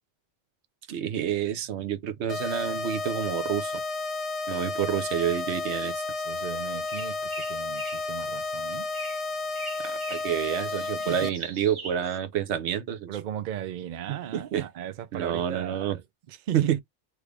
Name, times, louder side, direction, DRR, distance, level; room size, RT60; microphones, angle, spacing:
voice 1, 0.9-3.7 4.5-6.0 9.8-13.1 14.3-14.6 15.1-16.0 16.5-16.8, right 10 dB, 75° right, 0.9 m, -28 dB
sound 1, 2.3-11.3, left 3 dB, 40° left, 0.5 m, -32 dB
voice 2, 6.2-8.9 11.1-11.4 13.1-16.7, right 10 dB, 60° right, 0.5 m, -37 dB
sound 2, 6.9-8.1 8.9-9.2 9.5-10.3 10.8-12.2, right 1 dB, 25° right, 0.9 m, -41 dB
3.2 x 2.4 x 3.3 m
omnidirectional pair, 1.2 m